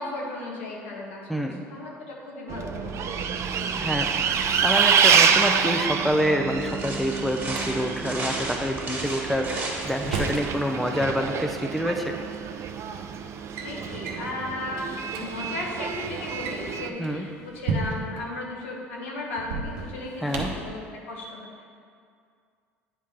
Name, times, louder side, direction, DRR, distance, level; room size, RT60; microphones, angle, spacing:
voice 1, 0.0-3.7 13.6-21.6, left 2 dB, 85° left, -2 dB, 1.2 m, -36 dB
voice 2, 1.3-1.6 3.8-12.1 17.0-17.3 20.2-20.5, equal, ahead, 3 dB, 0.6 m, -27 dB
Bus, 2.5-16.9, right 7 dB, 45° right, 0.5 m, -27 dB
Drawer open or close, 6.5-7.6 9.3-10.5 11.8-11.9 12.7-12.9 13.3-13.7 14.0-14.3 14.8-14.9 15.1-15.2 16.2-18.2 19.4-20.7, right 4 dB, 75° right, 0.9 m, -33 dB
sound 1, 6.6-10.6, right 2 dB, 25° right, 1.6 m, -34 dB
9.0 x 3.5 x 4.4 m, 2.2 s
hypercardioid pair, 75°, 7 cm